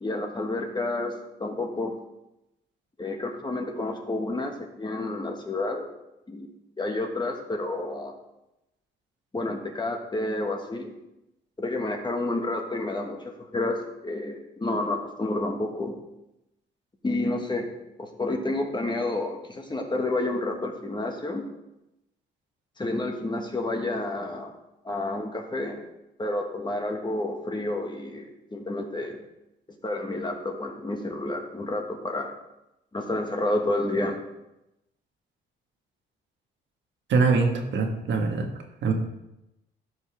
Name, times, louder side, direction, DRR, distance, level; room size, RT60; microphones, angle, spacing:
voice 1, 0.0-1.1 1.4-1.9 3.0-5.9 6.3-8.1 9.3-10.9 11.6-15.9 17.0-17.7 18.0-21.4 22.8-24.5 24.8-25.8 26.2-29.2 29.8-32.3 32.9-34.2, left 2 dB, 20° left, 3 dB, 1.5 m, -30 dB
voice 2, 37.1-38.5 38.8-38.9, right 4 dB, 65° right, 3 dB, 1.5 m, -23 dB
13.5 x 5.5 x 3.4 m, 0.91 s
cardioid pair, 90°, 20 cm